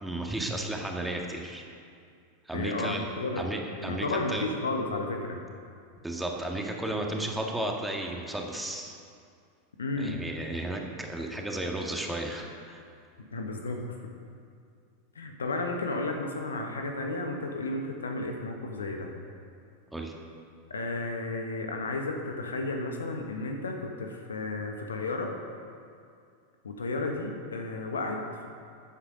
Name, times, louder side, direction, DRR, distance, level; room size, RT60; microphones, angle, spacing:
voice 1, 0.0-1.6 2.5-3.1 3.4-4.5 6.0-9.0 10.0-12.8 19.9-20.1, right 1 dB, 5° right, 1 dB, 1.7 m, -33 dB
voice 2, 2.5-3.5 3.7-5.4 9.8-10.2 13.3-14.1 15.1-19.1 20.7-25.3 26.6-28.5, left 2 dB, 75° left, 3 dB, 1.4 m, -33 dB
14.5 x 8.7 x 5.3 m, 2.3 s
figure-of-eight pair, 90°, 0 cm